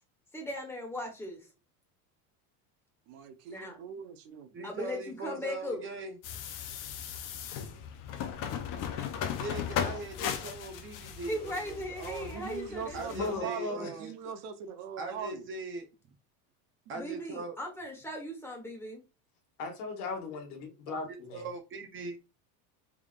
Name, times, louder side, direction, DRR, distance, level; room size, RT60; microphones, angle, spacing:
voice 1, 0.3-1.5 3.5-3.8 4.6-5.9 11.3-13.6 16.9-19.0, left 1 dB, 5° left, 1.1 m, -38 dB
voice 2, 3.1-4.6 12.3-15.5 16.9-17.0, right 6 dB, 70° right, 0.8 m, -41 dB
voice 3, 4.5-6.2 9.4-12.3 12.9-14.1 15.0-15.9 16.9-17.6 21.3-22.2, right 3 dB, 25° right, 0.6 m, -40 dB
sound 1, 6.2-13.4, left 8 dB, 45° left, 0.7 m, -37 dB
voice 4, 13.1-13.9 19.6-21.5, left 4 dB, 75° left, 1.5 m, -37 dB
3.5 x 3.5 x 2.4 m
supercardioid pair, 145°, 46 cm